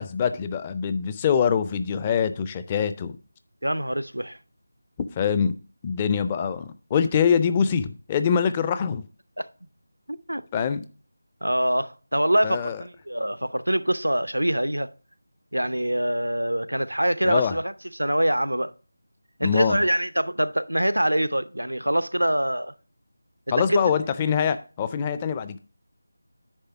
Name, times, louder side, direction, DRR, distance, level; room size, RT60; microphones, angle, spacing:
voice 1, 0.0-3.1 5.1-5.5 5.8-9.0 10.5-10.9 12.4-12.8 17.2-17.5 19.4-19.8 23.5-25.6, left 7 dB, 20° left, 0.4 m, -24 dB
voice 2, 3.6-4.4 9.4-9.5 10.1-10.4 11.4-14.9 15.5-18.7 19.4-22.7 23.7-23.9, right 1 dB, 90° right, 0.6 m, -24 dB
9.8 x 3.3 x 5.8 m
figure-of-eight pair, 165°, 0 cm